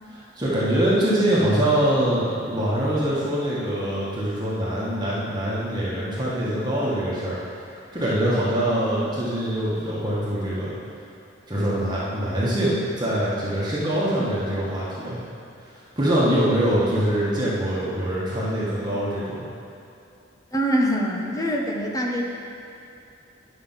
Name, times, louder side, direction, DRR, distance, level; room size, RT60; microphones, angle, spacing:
voice 1, 0.1-7.4 7.9-10.7 11.5-15.2 15.9-19.4, right 1 dB, 20° right, -8 dB, 1.7 m, -24 dB
voice 2, 8.6-9.1 20.5-22.2, equal, 20° left, -1 dB, 1.0 m, -25 dB
10.0 x 6.0 x 5.7 m, 2.7 s
head